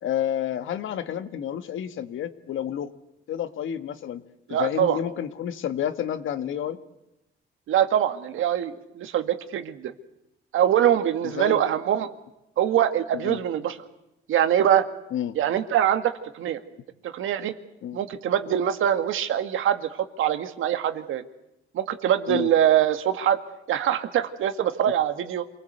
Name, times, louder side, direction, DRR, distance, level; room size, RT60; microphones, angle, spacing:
voice 1, 0.0-2.9 3.3-4.2 4.5-6.8 11.2-11.6 13.1-13.4 15.1-15.4 17.8-18.0 22.3-22.5, left 10 dB, 70° left, 10 dB, 1.7 m, -30 dB
voice 2, 4.5-5.0 7.7-9.9 10.5-12.1 12.6-13.8 14.3-14.9 15.4-16.6 17.0-17.5 17.9-21.2 21.7-23.4 23.7-25.5, right 10 dB, 75° right, 9 dB, 1.9 m, -23 dB
27.5 x 19.5 x 8.0 m, 0.88 s
cardioid pair, 110°, 21 cm